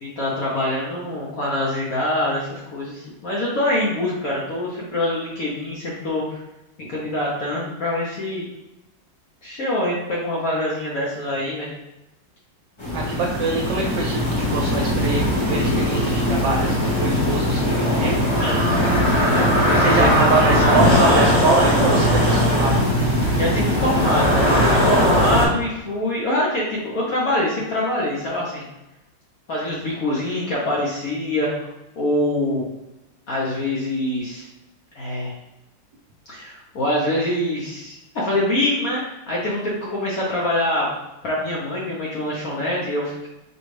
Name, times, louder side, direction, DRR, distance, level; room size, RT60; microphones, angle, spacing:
voice 1, 0.0-6.4 6.9-8.5 9.4-11.7 18.4-21.4 23.3-28.6 29.5-31.7 32.0-32.7 33.3-34.5 34.9-35.3 36.3-40.9 41.2-43.1, left 1 dB, 60° left, -5 dB, 1.1 m, -24 dB
sound 1, 12.8-25.5, equal, 40° left, 0.4 m, -19 dB
voice 2, 12.9-14.2 14.5-18.1 19.8-22.7, right 3 dB, 70° right, -2 dB, 1.2 m, -24 dB
5.1 x 2.3 x 3.2 m, 0.97 s
omnidirectional pair, 2.0 m